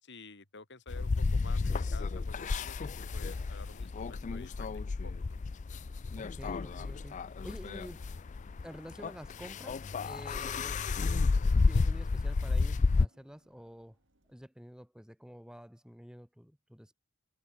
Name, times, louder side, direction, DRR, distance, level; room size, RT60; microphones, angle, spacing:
voice 1, 0.0-5.4, left 3 dB, 60° left, 4.8 m, -51 dB
sound 1, 0.9-13.1, left 4 dB, 35° left, 0.4 m, -31 dB
sound 2, 1.9-14.5, right 3 dB, 65° right, 7.0 m, -71 dB
voice 2, 6.2-8.1 8.6-10.8 11.6-14.0 14.3-16.9, equal, 5° right, 2.7 m, -49 dB
head